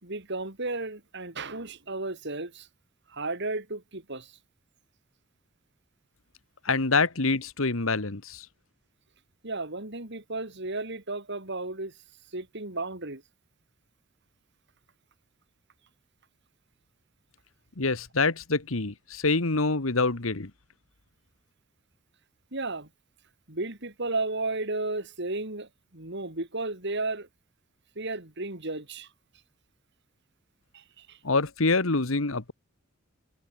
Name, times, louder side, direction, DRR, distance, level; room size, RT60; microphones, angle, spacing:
voice 1, 0.0-2.7 3.1-4.3 9.4-11.9 12.3-13.2 22.5-22.9 23.5-27.3 28.0-29.1 30.7-31.2, right 2 dB, 60° right, 4.1 m, -33 dB
voice 2, 6.7-8.5 17.8-20.5 31.2-32.5, left 3 dB, 80° left, 1.7 m, -26 dB
head